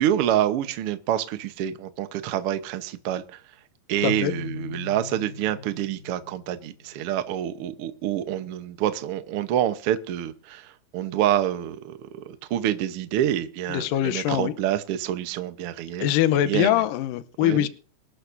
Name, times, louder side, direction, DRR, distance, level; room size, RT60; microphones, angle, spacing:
voice 1, 0.0-3.4 3.9-16.1 16.4-16.8 17.4-17.7, right 11 dB, 80° right, 9 dB, 1.2 m, -27 dB
Keyboard (musical), 4.0-6.9, left 5 dB, 20° right, 4.3 m, -38 dB
voice 2, 13.7-14.5 16.0-17.7, left 12 dB, 80° left, 13 dB, 2.4 m, -23 dB
25.0 x 11.5 x 2.6 m, 0.42 s
omnidirectional pair, 4.0 m